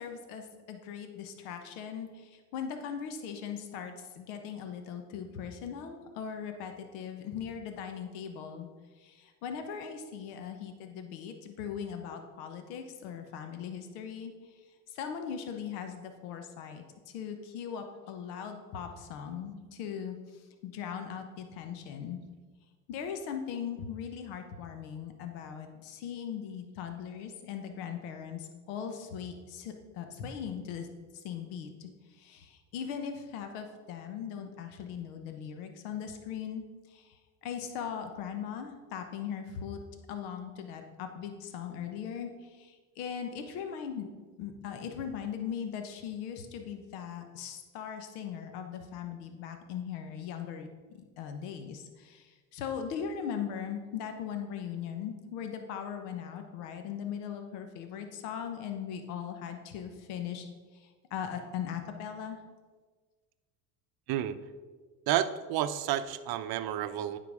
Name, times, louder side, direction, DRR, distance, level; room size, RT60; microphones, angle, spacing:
voice 1, 0.0-8.7 9.0-14.3 14.9-20.2 20.6-22.2 22.9-30.9 31.1-39.8 40.1-44.1 44.4-60.5 60.7-62.4, left 7 dB, 80° left, 6 dB, 1.0 m, -39 dB
voice 2, 65.1-67.2, right 11 dB, 55° right, 12 dB, 0.6 m, -30 dB
9.3 x 3.9 x 4.8 m, 1.4 s
supercardioid pair, 95°, 44 cm